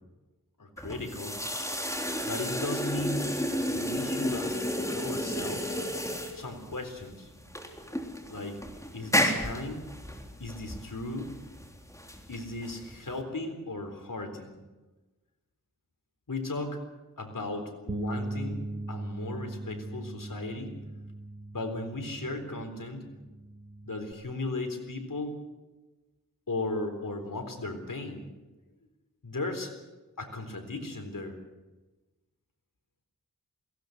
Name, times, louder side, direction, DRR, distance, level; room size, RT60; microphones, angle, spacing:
voice 1, 0.6-1.4 2.2-3.3 3.7-4.6 4.9-5.8 6.3-7.3 8.3-8.6 8.9-9.9 10.4-11.3 12.3-14.6 16.3-16.8 17.2-20.8 21.5-23.1 23.8-25.3 26.5-28.2 29.2-29.7 30.2-31.4, left 2 dB, 70° left, 5 dB, 3.9 m, -36 dB
sound 1, 0.8-13.2, equal, 10° left, 3.6 m, -32 dB
Bass guitar, 17.9-24.1, right 2 dB, 30° right, 1.6 m, -39 dB
22.5 x 17.0 x 8.0 m, 1.1 s
wide cardioid pair, 45°, 34 cm